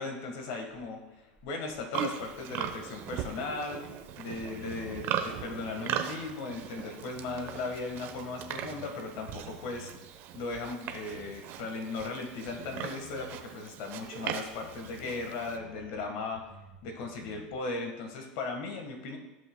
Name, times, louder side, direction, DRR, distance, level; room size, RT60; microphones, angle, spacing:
voice 1, 0.0-3.8 4.2-9.9 10.3-16.5 16.8-19.2, left 3 dB, 65° left, 3 dB, 1.5 m, -37 dB
sound 1, 1.2-6.8 7.1-10.2 10.5-12.3 12.6-16.1 16.3-17.5, left 3 dB, 10° left, 2.5 m, -55 dB
Livestock farm animals working animals, 1.9-15.6, right 9 dB, 55° right, 0.8 m, -39 dB
15.0 x 5.4 x 2.2 m, 1.0 s
supercardioid pair, 110°, 5 cm